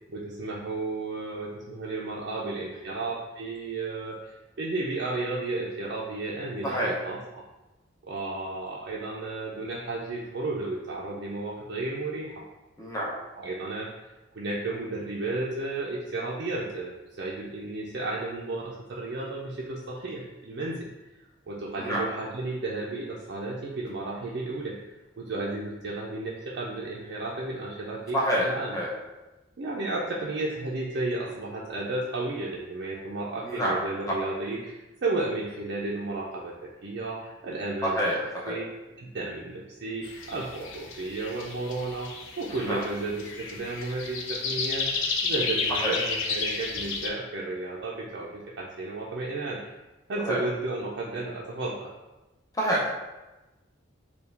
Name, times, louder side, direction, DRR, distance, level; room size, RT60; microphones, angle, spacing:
voice 1, 0.1-7.4 8.0-12.4 13.3-13.9 14.3-20.9 21.5-24.8 25.2-28.8 29.6-36.5 36.8-38.0 38.5-38.7 39.0-44.9 45.2-49.7 50.1-51.9, right 2 dB, 60° right, -5 dB, 0.5 m, -33 dB
voice 2, 6.6-7.0 12.8-13.1 21.8-22.0 28.1-28.5 28.7-28.9 33.4-34.1 37.8-38.6 42.5-42.8 45.7-46.0 50.2-50.4 52.5-52.9, equal, 20° left, -4 dB, 0.6 m, -28 dB
sound 1, 40.0-47.1, left 4 dB, 85° left, 0.5 m, -32 dB
4.5 x 2.3 x 3.3 m, 1.1 s
head